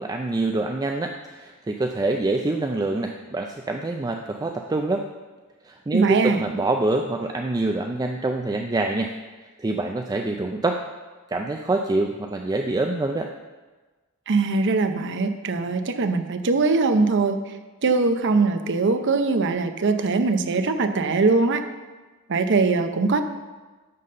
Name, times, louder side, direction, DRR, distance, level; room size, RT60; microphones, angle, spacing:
voice 1, 0.0-5.1 5.6-9.1 9.6-10.8 11.3-13.3, right 2 dB, 15° right, 4 dB, 0.4 m, -25 dB
voice 2, 5.9-6.4 14.3-17.4 17.8-21.6 22.3-23.2, right 3 dB, 55° right, 8 dB, 0.7 m, -21 dB
11.0 x 4.1 x 6.5 m, 1.3 s
head